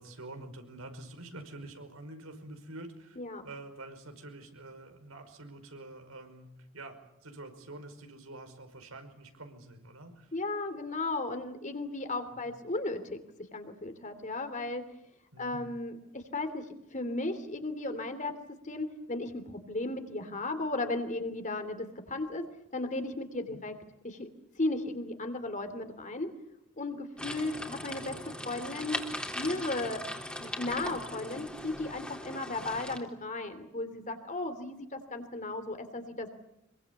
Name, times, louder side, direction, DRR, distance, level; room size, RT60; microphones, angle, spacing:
voice 1, 0.0-3.2 3.4-6.5 6.7-7.0 7.2-10.3 12.3-12.5 15.3-15.6 23.5-23.6 27.3-27.4 30.8-31.0, right 2 dB, 80° right, 6 dB, 5.4 m, -47 dB
voice 2, 10.3-13.2 13.5-14.8 15.4-16.6 16.9-18.4 18.6-19.4 19.7-22.5 22.7-23.7 24.0-24.3 24.6-26.3 26.8-29.0 29.3-30.0 30.4-36.3, left 2 dB, 35° left, 9 dB, 3.0 m, -35 dB
sound 1, 27.2-33.0, left 1 dB, 5° left, 3.5 m, -39 dB
25.5 x 23.5 x 8.4 m, 0.80 s
head